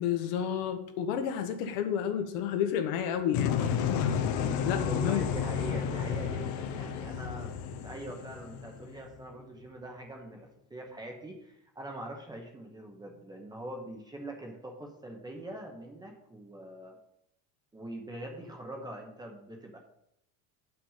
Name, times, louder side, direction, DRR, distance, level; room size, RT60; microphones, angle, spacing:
voice 1, 0.0-3.7 4.6-5.2, left 9 dB, 65° left, 7 dB, 1.3 m, -31 dB
sound 1, 3.3-9.2, left 7 dB, 40° left, 0.7 m, -31 dB
voice 2, 4.8-17.0 17.7-19.8, right 1 dB, 10° right, 1 dB, 1.0 m, -43 dB
8.6 x 5.9 x 5.7 m, 0.74 s
cardioid pair, 165°, 45 cm